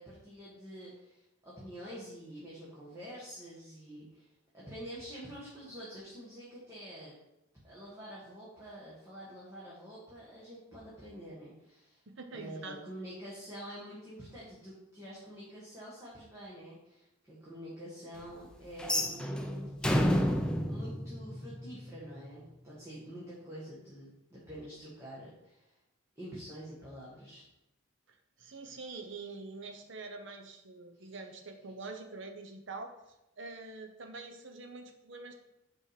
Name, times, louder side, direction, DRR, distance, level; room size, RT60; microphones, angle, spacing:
voice 1, 0.0-4.3 4.5-7.1 7.6-12.0 12.3-20.4 20.6-25.7 26.1-27.5 30.9-31.1, equal, 15° right, -9 dB, 1.6 m, -47 dB
voice 2, 12.1-12.8 28.1-32.9 33.4-35.3, right 3 dB, 55° right, 5 dB, 0.8 m, -45 dB
sound 1, 18.8-21.9, equal, 5° left, 0.4 m, -30 dB
5.6 x 4.8 x 5.0 m, 0.89 s
head